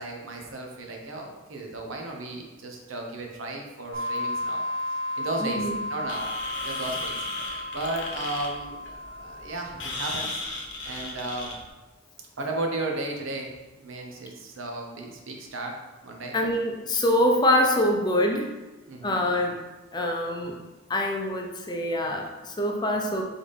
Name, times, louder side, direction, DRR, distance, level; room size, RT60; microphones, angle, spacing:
voice 1, 0.0-4.6 5.2-6.3 6.6-7.2 7.7-10.4 10.8-11.6 12.4-15.8 16.0-16.4 18.9-19.2, right 2 dB, 75° right, 1 dB, 0.8 m, -34 dB
sound 1, 3.9-10.4, left 1 dB, 45° right, 0.9 m, -34 dB
voice 2, 5.4-5.8 16.3-18.5 19.0-19.6 19.9-20.5 20.9-23.2, left 1 dB, 20° left, 1 dB, 0.5 m, -24 dB
sound 2, 6.1-11.7, left 2 dB, 65° left, 0.9 m, -35 dB
4.0 x 3.6 x 3.3 m, 1.2 s
head